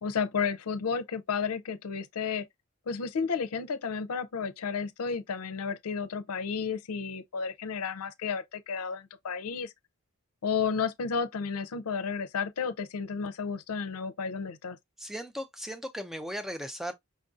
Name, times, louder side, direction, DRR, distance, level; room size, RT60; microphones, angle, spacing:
voice 1, 0.0-2.5 2.9-9.7 10.4-14.8, left 5 dB, 90° left, 0.5 m, -32 dB
voice 2, 15.0-16.9, equal, ahead, 0.4 m, -37 dB
5.2 x 2.5 x 2.4 m
head